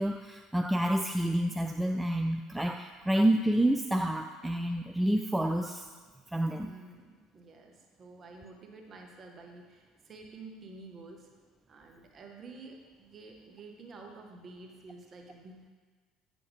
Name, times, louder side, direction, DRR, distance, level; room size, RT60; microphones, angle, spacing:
voice 1, 0.0-5.9 6.3-6.7, right 1 dB, 5° right, 5 dB, 0.3 m, -28 dB
voice 2, 6.6-11.3 11.7-15.7, right 3 dB, 35° right, 2 dB, 1.2 m, -50 dB
8.4 x 6.2 x 3.5 m, 1.5 s
figure-of-eight pair, 60°, 0 cm